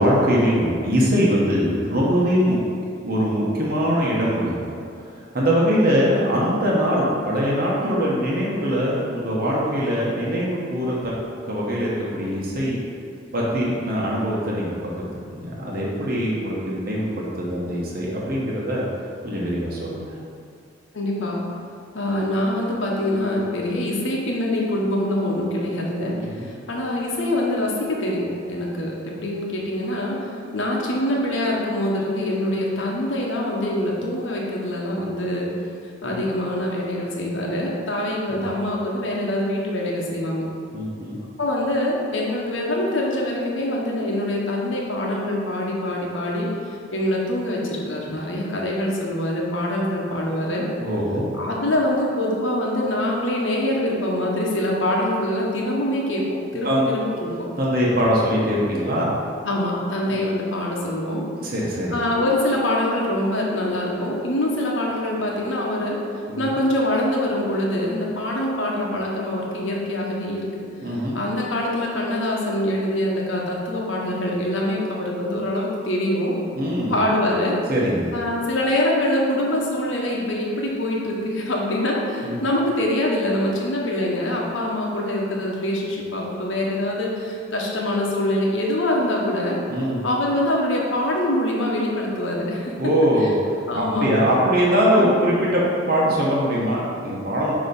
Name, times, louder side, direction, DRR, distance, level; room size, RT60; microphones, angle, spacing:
voice 1, 0.0-2.6 3.0-4.8 5.3-11.1 11.4-12.8 13.3-18.9 19.2-20.1 26.2-26.5 36.0-36.3 38.3-38.4 40.7-41.2 50.8-51.3 56.6-56.8 57.5-59.1 60.1-60.2 61.4-62.0 66.3-66.4 70.8-71.2 76.6-76.9 77.7-78.1 82.2-82.4 89.7-90.0 92.8-93.3 93.8-97.5, equal, 50° right, -5 dB, 1.0 m, -22 dB
voice 2, 20.9-21.4 21.9-30.2 30.5-35.5 36.0-40.5 41.4-46.5 46.9-50.7 51.4-56.3 56.5-57.5 59.4-61.2 61.9-66.0 66.4-70.5 71.1-76.4 76.9-77.6 78.1-89.6 90.0-92.9 93.7-94.1 94.9-95.2, left 1 dB, 75° left, -3 dB, 1.1 m, -24 dB
6.6 x 3.0 x 5.3 m, 2.3 s
head